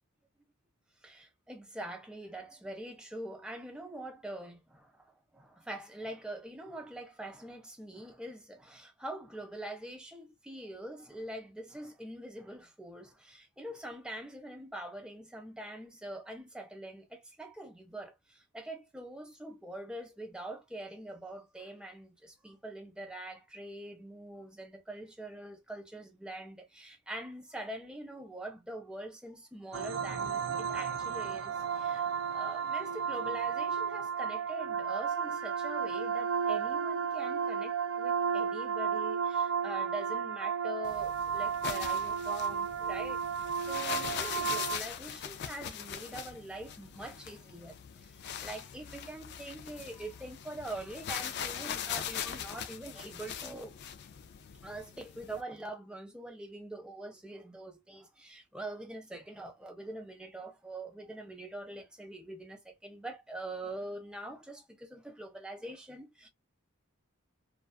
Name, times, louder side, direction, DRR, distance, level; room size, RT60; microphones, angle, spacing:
voice 1, 1.0-5.0 5.3-43.2 43.6-47.8 48.1-53.7 54.6-66.3, right 1 dB, 5° right, 0.5 m, -44 dB
sound 1, 29.7-44.8, right 6 dB, 60° right, 0.4 m, -33 dB
sound 2, 40.8-55.4, left 8 dB, 50° left, 0.3 m, -41 dB
2.3 x 2.3 x 2.3 m
head